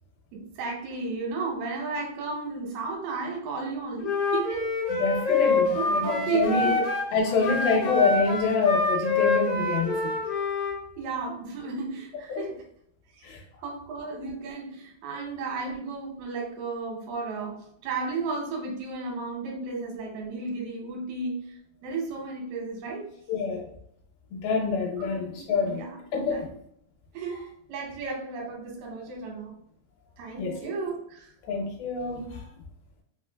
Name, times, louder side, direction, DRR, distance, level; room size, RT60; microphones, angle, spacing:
voice 1, 0.3-5.0 5.3-6.9 7.3-7.4 11.0-12.6 13.1-13.3 13.6-23.1 25.0-25.1 25.4-26.0 26.3-26.5 27.1-29.5 30.2-31.3, right 4 dB, 85° right, 0 dB, 2.9 m, -34 dB
Wind instrument woodwind instrument, 4.0-7.1 7.4-10.8, left 3 dB, 65° left, 1.0 m, -26 dB
voice 2, 4.9-6.8 7.1-10.2 12.3-12.4 13.2-13.4 23.3-23.7 24.3-25.8 26.1-26.5 30.4-30.6 31.4-32.5, left 4 dB, 80° left, -1 dB, 2.7 m, -26 dB
6.3 x 2.1 x 2.2 m, 0.71 s
omnidirectional pair, 4.3 m